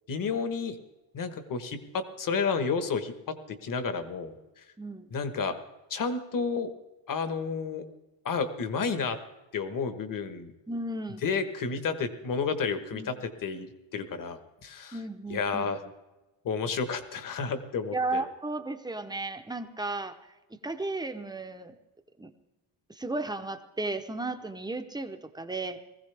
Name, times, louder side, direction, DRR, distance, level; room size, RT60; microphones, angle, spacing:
voice 1, 0.1-0.8 1.1-4.3 5.1-5.6 5.9-6.7 7.1-7.8 8.2-9.2 9.5-10.5 11.2-15.0 15.3-15.8 16.4-18.2, left 5 dB, 45° left, 9 dB, 1.3 m, -31 dB
voice 2, 4.8-5.1 10.7-11.3 12.9-13.1 14.9-15.7 17.9-20.2 20.6-21.8 22.2-22.3 22.9-25.8, right 2 dB, 10° right, 7 dB, 0.7 m, -34 dB
20.0 x 15.5 x 3.4 m, 1.1 s
cardioid pair, 170°, 46 cm